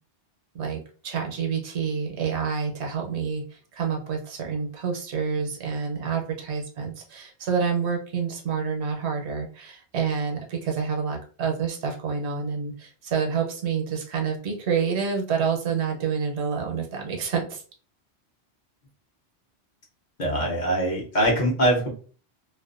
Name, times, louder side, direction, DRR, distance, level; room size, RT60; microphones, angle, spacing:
voice 1, 0.5-17.6, right 6 dB, 85° right, 1 dB, 0.9 m, -28 dB
voice 2, 20.2-21.9, right 1 dB, 50° left, -2 dB, 0.7 m, -23 dB
2.4 x 2.1 x 2.3 m, 0.40 s
omnidirectional pair, 1.1 m